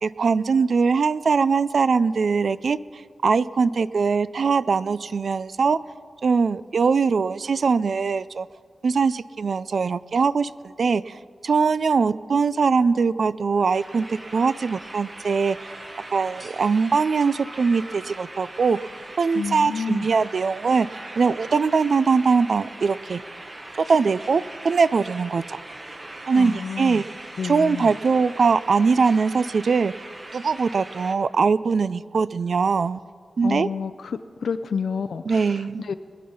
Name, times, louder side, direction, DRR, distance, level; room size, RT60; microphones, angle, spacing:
voice 1, 0.0-2.8 3.2-5.8 6.2-8.5 8.8-10.5 10.8-14.1 14.3-15.7 16.1-18.9 19.2-20.9 21.2-23.2 23.8-25.6 26.3-27.0 27.4-29.9 30.3-33.0 33.4-33.7 35.3-35.8, right 5 dB, 60° right, 17 dB, 0.4 m, -21 dB
sound 1, 13.7-31.2, right 2 dB, 30° right, 1.2 m, -40 dB
voice 2, 19.3-20.1 26.3-27.0 27.4-27.9 33.4-35.9, left 6 dB, 80° left, 10 dB, 0.5 m, -30 dB
22.0 x 10.5 x 5.5 m, 2.1 s
wide cardioid pair, 135°, 0 cm